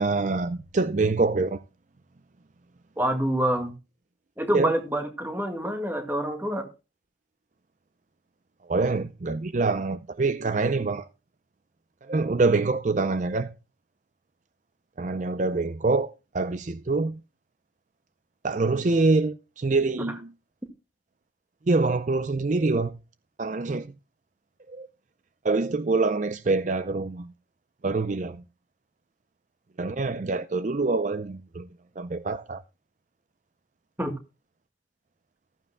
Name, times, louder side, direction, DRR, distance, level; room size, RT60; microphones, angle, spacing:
voice 1, 0.0-1.6 4.5-4.7 8.7-11.1 12.1-13.5 15.0-17.2 18.4-20.3 21.7-22.9 23.4-23.9 24.7-24.9 25.4-27.3 27.8-28.4 29.8-31.7 32.0-32.6, right 3 dB, 40° right, 0.5 m, -25 dB
voice 2, 3.0-3.7 4.4-6.7 34.0-34.1, right 1 dB, 10° right, 1.8 m, -26 dB
15.0 x 14.0 x 2.2 m
head